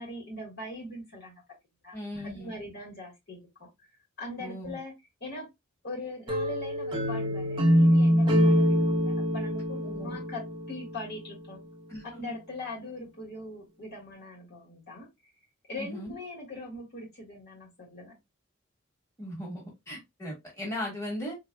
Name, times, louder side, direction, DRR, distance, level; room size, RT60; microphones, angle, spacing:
voice 1, 0.0-1.4 1.8-2.0 2.2-3.7 4.2-4.9 5.2-5.5 5.8-11.6 12.1-15.1 15.7-18.1, left 2 dB, 55° left, 1.6 m, -41 dB
voice 2, 1.9-2.5 4.4-4.8 9.8-10.2 11.9-12.3 15.8-16.1 19.2-21.4, left 1 dB, 15° left, 1.5 m, -38 dB
sound 1, 6.3-11.2, equal, 25° right, 0.9 m, -24 dB
3.8 x 2.7 x 2.2 m
head